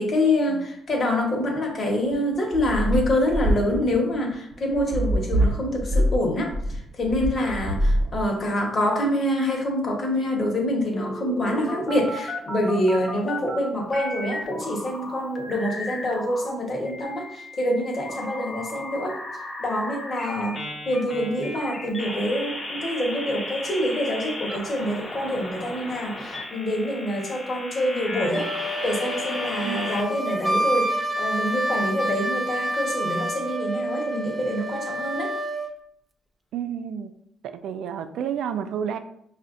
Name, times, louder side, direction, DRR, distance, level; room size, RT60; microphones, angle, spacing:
voice 1, 0.0-19.2 19.6-20.6 20.9-28.5 28.8-35.3, left 1 dB, 45° left, 0 dB, 1.2 m, -26 dB
sound 1, 2.1-8.6, equal, 35° right, 0.8 m, -24 dB
sound 2, 10.9-13.6 13.9-16.5 16.8-30.0, left 1 dB, 30° left, 0.8 m, -35 dB
Wind instrument woodwind instrument, 28.3-35.7, right 1 dB, ahead, 0.4 m, -28 dB
voice 2, 29.6-30.1 36.5-37.1 37.4-39.0, right 8 dB, 80° right, 9 dB, 0.4 m, -31 dB
5.6 x 2.5 x 2.5 m, 0.73 s
cardioid pair, 90°, 0 cm